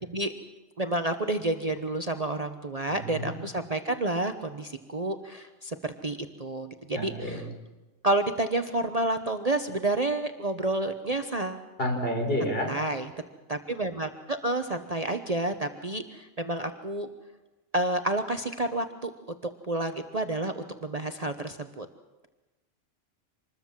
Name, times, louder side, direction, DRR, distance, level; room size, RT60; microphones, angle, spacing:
voice 1, 0.8-7.4 8.0-11.6 12.7-13.1 13.5-17.1 17.7-19.1 19.4-21.9, right 2 dB, 30° right, 7 dB, 1.0 m, -30 dB
voice 2, 2.9-3.3 6.9-7.4 11.8-12.7, equal, 45° left, 2 dB, 4.9 m, -29 dB
26.0 x 21.0 x 7.4 m, 1.1 s
omnidirectional pair, 1.3 m